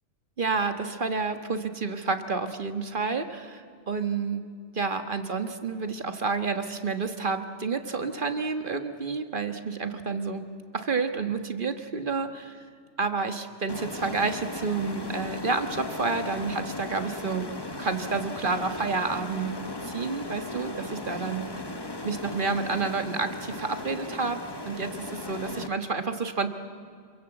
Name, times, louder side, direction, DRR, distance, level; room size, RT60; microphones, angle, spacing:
voice 1, 0.4-4.4 4.7-10.4 10.7-12.6 13.0-17.5 17.8-19.5 19.8-21.5 22.0-26.5, right 4 dB, 45° right, 8 dB, 1.7 m, -29 dB
sound 1, 13.7-25.7, left 2 dB, 20° left, 1.3 m, -37 dB
27.0 x 23.0 x 8.0 m, 2.1 s
omnidirectional pair, 1.2 m